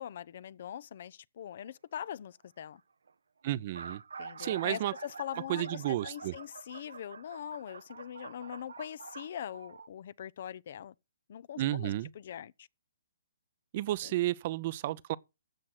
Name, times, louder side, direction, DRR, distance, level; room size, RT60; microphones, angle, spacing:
voice 1, 0.0-2.8 4.2-10.9 11.3-12.7 14.0-14.1, left 10 dB, 55° left, 0.6 m, -42 dB
sound 1, 1.6-1.9 2.8-2.9 3.1-3.2 3.5-9.9, right 5 dB, 75° right, 0.7 m, -47 dB
voice 2, 3.4-4.0 4.4-4.9 5.5-6.3 11.6-12.1 13.7-15.2, right 14 dB, 40° right, 0.6 m, -32 dB
13.0 x 7.6 x 6.0 m
figure-of-eight pair, 135°, 0 cm